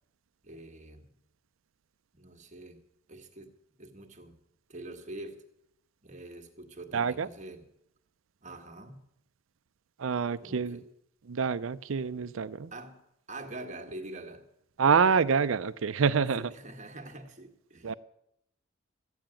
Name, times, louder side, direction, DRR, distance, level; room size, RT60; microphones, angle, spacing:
voice 1, 0.4-1.2 2.1-2.8 3.1-4.4 4.7-5.4 6.0-7.7 8.4-9.0 10.4-10.9 12.7-13.0 13.3-14.4 16.4-17.9, right 2 dB, 40° right, 1.6 m, -45 dB
voice 2, 6.9-7.3 10.0-10.8 11.3-12.7 14.8-16.5 17.8-17.9, right 6 dB, 80° right, 0.5 m, -26 dB
14.0 x 8.9 x 9.0 m
head